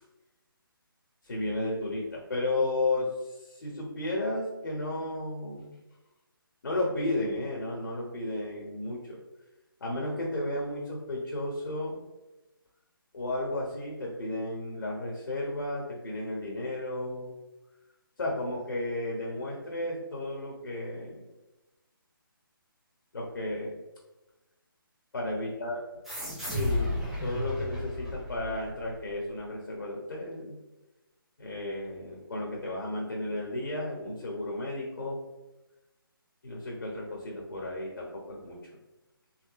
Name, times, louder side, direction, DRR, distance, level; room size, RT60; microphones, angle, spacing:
voice 1, 1.2-5.8 6.6-9.2 9.8-12.0 13.1-17.3 18.2-21.2 23.1-23.8 25.1-25.8 26.3-30.6 31.4-35.2 36.4-38.6, left 2 dB, 65° left, -2 dB, 1.4 m, -33 dB
sound 1, 26.0-29.1, left 1 dB, 5° right, 1.1 m, -33 dB
4.4 x 3.7 x 3.1 m, 1.0 s
figure-of-eight pair, 150°, 12 cm